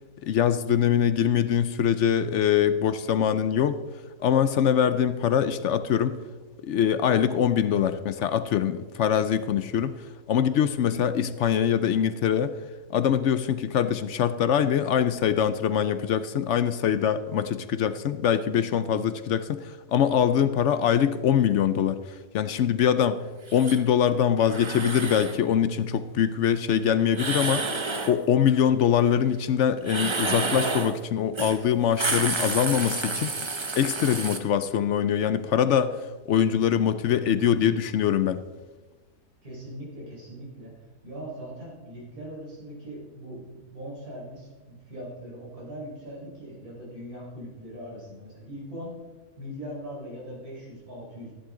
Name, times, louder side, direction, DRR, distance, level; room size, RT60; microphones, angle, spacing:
voice 1, 0.2-3.8 4.2-6.2 6.6-10.0 10.3-12.6 12.9-22.0 22.3-23.2 23.5-27.7 28.1-33.3 33.8-36.0 36.3-38.4, left 9 dB, 65° left, 12 dB, 0.8 m, -23 dB
sound 1, 23.5-23.8 24.4-25.4 27.1-28.2 29.8-31.0 31.4-31.6 31.9-34.4, right 3 dB, 25° right, 0.7 m, -29 dB
voice 2, 39.4-40.7 41.0-48.9 49.4-51.3, equal, 80° right, -4 dB, 5.2 m, -40 dB
14.0 x 11.5 x 3.8 m, 1.2 s
omnidirectional pair, 1.5 m